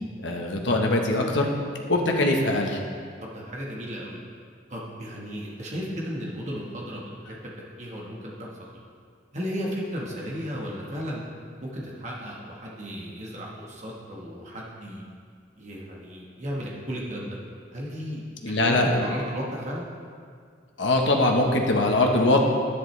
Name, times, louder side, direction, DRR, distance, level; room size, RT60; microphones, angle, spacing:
voice 1, 0.2-1.5 1.9-2.8 18.4-18.9 20.8-22.4, left 2 dB, 90° left, 1 dB, 1.1 m, -22 dB
voice 2, 3.2-4.2 4.7-7.3 7.8-8.7 9.3-11.2 11.6-15.0 15.6-17.4 17.7-18.3 18.6-19.8, equal, 40° right, -3 dB, 1.3 m, -34 dB
11.0 x 9.8 x 3.3 m, 2.1 s
head